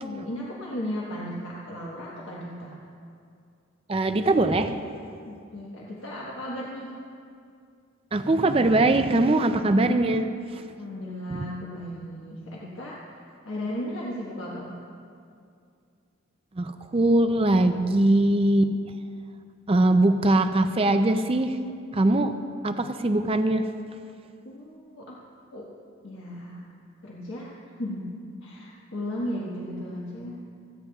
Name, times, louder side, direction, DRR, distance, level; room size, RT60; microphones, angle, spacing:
voice 1, 0.0-2.8 5.2-6.9 10.8-14.7 24.4-25.2 25.5-25.7 26.0-26.7 27.0-30.4, equal, 65° left, -5 dB, 1.4 m, -35 dB
voice 2, 3.9-4.7 8.1-10.3 10.5-10.6 16.6-18.8 19.7-21.6 21.9-22.3 22.6-23.7, right 2 dB, 25° right, 8 dB, 0.4 m, -21 dB
27.5 x 9.5 x 2.4 m, 2.4 s
head